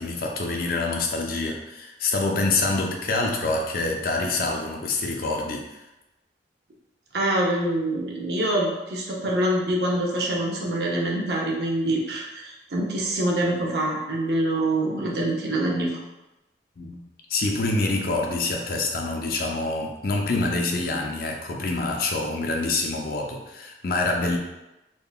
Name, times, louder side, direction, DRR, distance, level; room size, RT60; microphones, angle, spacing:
voice 1, 0.0-5.8 16.8-17.0 17.3-24.4, left 2 dB, 50° left, 1 dB, 0.4 m, -26 dB
voice 2, 7.1-15.9, right 1 dB, 60° right, -1 dB, 0.6 m, -25 dB
3.6 x 2.2 x 2.3 m, 0.98 s
head